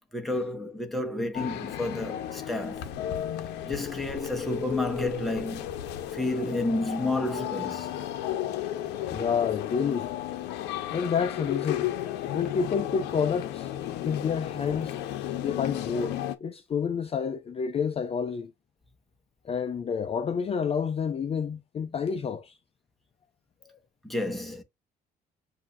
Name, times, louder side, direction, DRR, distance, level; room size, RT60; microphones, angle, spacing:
voice 1, 0.1-2.9 3.6-5.7 6.1-7.9 24.0-24.6, left 2 dB, ahead, 1.3 m, -30 dB
sound 1, 1.3-16.4, left 11 dB, 90° left, 0.8 m, -34 dB
voice 2, 9.1-10.2 10.9-11.9 12.3-13.7 14.0-15.0 15.4-18.5 19.4-22.5 23.6-23.8, left 6 dB, 35° left, 0.6 m, -29 dB
7.1 x 2.8 x 2.5 m
cardioid pair, 110°, 17 cm